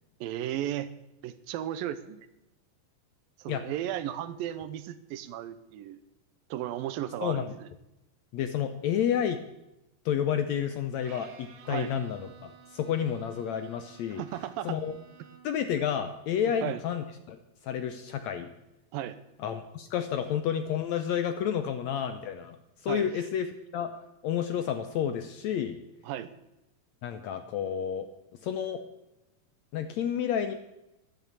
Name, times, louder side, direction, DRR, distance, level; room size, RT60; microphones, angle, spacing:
voice 1, 0.2-0.9 1.2-2.3 3.4-6.0 6.5-7.7 11.7-11.9 14.1-14.8 16.4-16.8 18.9-19.2 22.9-23.1 26.0-26.3, right 12 dB, 90° right, 13 dB, 2.6 m, -35 dB
voice 2, 7.2-7.5 8.3-9.4 10.0-14.2 14.6-14.9 15.4-17.4 17.6-18.5 19.4-22.6 22.8-23.9 24.2-25.8 27.0-28.1 28.4-28.8 29.7-30.6, left 9 dB, 75° left, 8 dB, 1.7 m, -30 dB
Bowed string instrument, 11.0-15.7, right 7 dB, 70° right, 2.9 m, -53 dB
12.0 x 10.5 x 8.3 m, 0.93 s
omnidirectional pair, 4.0 m